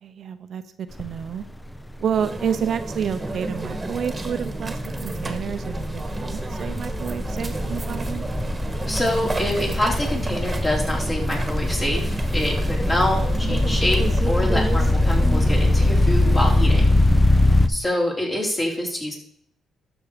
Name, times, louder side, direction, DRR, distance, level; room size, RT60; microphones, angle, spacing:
voice 1, 0.0-1.4 2.0-8.3 17.1-17.6, right 8 dB, 60° right, 9 dB, 0.8 m, -30 dB
sound 1, 0.9-1.3 1.5-17.7, left 1 dB, 10° left, 0.8 m, -22 dB
sound 2, 2.1-16.6, right 2 dB, 20° right, 1.8 m, -32 dB
voice 2, 8.9-16.9 17.7-19.2, left 1 dB, 25° left, -1 dB, 4.2 m, -26 dB
12.0 x 7.2 x 5.1 m, 0.65 s
cardioid pair, 90°, 0 cm